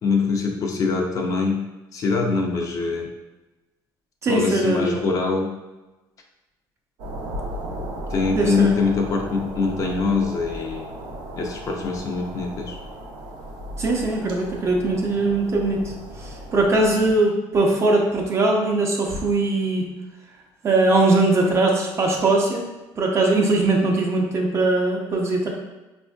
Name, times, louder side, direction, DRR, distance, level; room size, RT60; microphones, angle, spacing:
voice 1, 0.0-3.1 4.3-5.6 8.1-10.9 11.4-12.7, left 4 dB, 45° left, 2 dB, 0.4 m, -23 dB
voice 2, 4.2-5.1 8.3-8.7 13.8-15.9 16.2-19.9 20.6-22.6 23.0-25.5, right 2 dB, 35° right, 0 dB, 0.6 m, -20 dB
sound 1, 7.0-17.1, equal, 85° right, 0.6 m, -35 dB
4.2 x 2.5 x 2.3 m, 1.1 s
cardioid pair, 135°, 8 cm